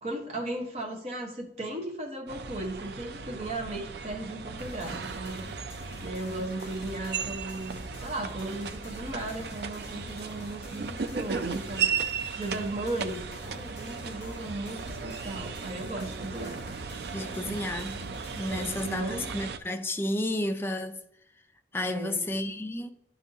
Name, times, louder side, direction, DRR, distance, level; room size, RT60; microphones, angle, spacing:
voice 1, 0.0-5.5 6.0-11.9 12.3-16.6 17.5-17.8 18.5-19.3 21.8-22.3, right 2 dB, 40° right, 1.0 m, -36 dB
sound 1, 2.3-19.6, right 6 dB, 70° right, 0.4 m, -36 dB
sound 2, 4.6-18.9, left 3 dB, 70° left, 0.6 m, -47 dB
voice 2, 17.1-18.0 18.4-21.0 21.7-22.9, left 1 dB, 15° left, 0.4 m, -32 dB
11.0 x 3.9 x 2.7 m
head